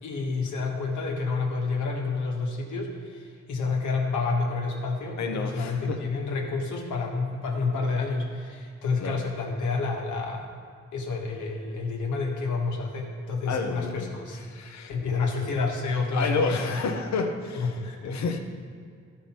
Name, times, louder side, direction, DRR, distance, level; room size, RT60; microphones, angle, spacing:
voice 1, 0.0-10.5 10.9-14.4 14.9-16.9 17.5-18.2, left 4 dB, 85° left, -1 dB, 1.5 m, -29 dB
voice 2, 5.2-6.0 9.0-9.2 13.5-15.2 16.1-17.7 18.0-18.4, left 4 dB, 70° left, 5 dB, 1.0 m, -30 dB
12.5 x 5.1 x 4.4 m, 2.2 s
cardioid pair, 70°, 29 cm